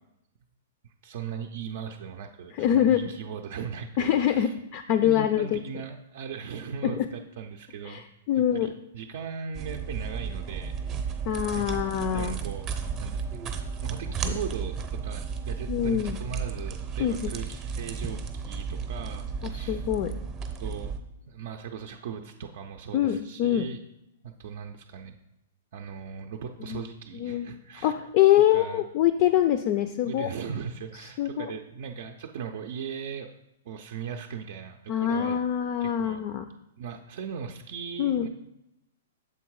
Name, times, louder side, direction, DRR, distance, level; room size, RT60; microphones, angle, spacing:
voice 1, 0.8-4.5 4.9-8.0 8.5-11.2 11.5-11.8 12.1-12.7 13.0-13.5 13.8-19.8 20.6-20.9 21.3-23.8 24.2-25.2 25.7-27.9 28.5-28.8 30.1-33.3 33.6-35.4 35.8-36.2 36.8-38.3, right 7 dB, 60° right, 3 dB, 0.5 m, -38 dB
voice 2, 2.5-3.1 4.0-5.6 6.8-7.1 7.8-8.7 11.2-12.4 14.2-14.3 15.7-16.2 17.0-17.3 19.4-20.1 22.9-23.7 26.7-26.8 27.1-27.5 27.8-30.3 31.2-31.5 34.9-36.5 38.0-38.3, left 11 dB, 45° left, 9 dB, 0.4 m, -24 dB
sound 1, 9.5-21.0, right 5 dB, 25° right, 0.7 m, -34 dB
7.0 x 3.6 x 4.7 m, 0.88 s
hypercardioid pair, 135°, 0 cm